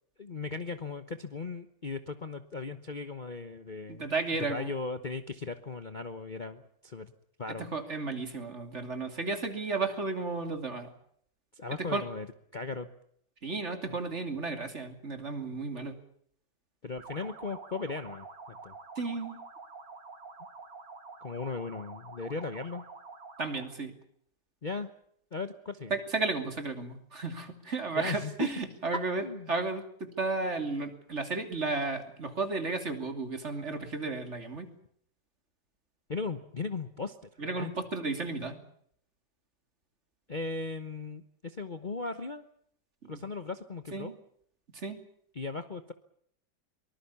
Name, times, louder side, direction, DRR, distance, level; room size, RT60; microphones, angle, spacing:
voice 1, 0.2-4.1 4.3-7.1 7.4-7.7 11.5-12.3 12.5-12.9 13.9-14.0 16.8-18.7 21.2-22.8 24.6-24.9 25.3-25.9 28.0-28.5 29.2-29.5 36.1-37.7 40.3-42.4 43.1-44.2 45.3-45.9, left 4 dB, 35° left, 8 dB, 1.0 m, -37 dB
voice 2, 3.9-4.7 7.5-10.9 11.8-12.0 13.4-15.9 19.0-19.4 23.4-23.9 25.9-29.2 29.5-29.8 30.2-34.7 37.4-38.6 43.1-43.2 43.9-44.1 44.7-45.0, right 3 dB, 40° right, 7 dB, 3.0 m, -33 dB
sound 1, 17.0-23.8, right 4 dB, 85° right, 3.4 m, -48 dB
23.5 x 20.5 x 7.1 m, 0.66 s
omnidirectional pair, 1.8 m